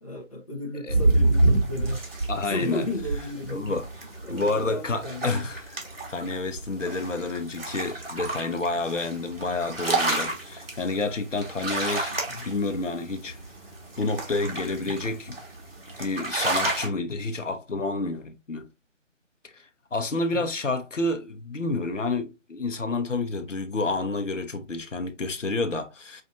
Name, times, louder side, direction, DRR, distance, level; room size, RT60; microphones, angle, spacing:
voice 1, 0.0-2.0 2.4-3.7 4.2-5.5 20.3-20.4, left 1 dB, 30° left, 0.6 m, -34 dB
sound 1, 0.9-16.9, right 2 dB, 50° right, 1.4 m, -29 dB
voice 2, 2.3-2.8 3.5-3.9 4.3-5.8 6.1-13.4 14.0-15.4 16.0-18.7 19.4-26.2, left 3 dB, 70° left, 0.8 m, -29 dB
5.3 x 2.5 x 2.5 m
figure-of-eight pair, 155°, 38 cm